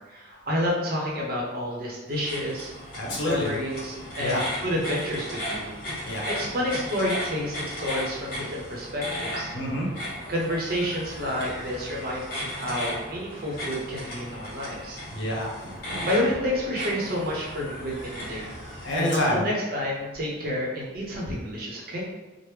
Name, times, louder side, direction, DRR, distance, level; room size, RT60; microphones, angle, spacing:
voice 1, 0.0-2.7 3.2-9.5 10.3-15.0 16.0-18.5 18.9-22.0, left 1 dB, 50° right, -3 dB, 0.7 m, -29 dB
sound 1, 2.1-19.0, equal, 45° left, 1.4 m, -36 dB
voice 2, 3.0-3.5 4.2-4.4 6.0-6.2 9.5-10.3 15.1-16.1 18.4-18.5 18.8-19.4, equal, 70° left, -3 dB, 0.8 m, -28 dB
3.1 x 2.1 x 3.2 m, 1.1 s
head